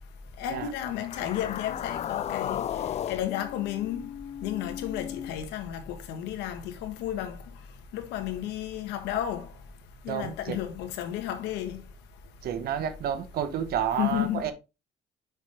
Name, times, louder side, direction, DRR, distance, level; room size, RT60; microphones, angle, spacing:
voice 1, 0.4-2.6 3.1-4.1 4.4-7.4 7.9-9.5 10.0-11.8 14.0-14.5, left 11 dB, 90° left, 1.5 m, -32 dB
sound 1, 0.9-5.3, left 10 dB, 40° left, 0.4 m, -35 dB
voice 2, 10.1-10.6 12.4-14.5, right 9 dB, 65° right, 1.2 m, -30 dB
6.2 x 5.5 x 3.6 m
cardioid pair, 110°, 17 cm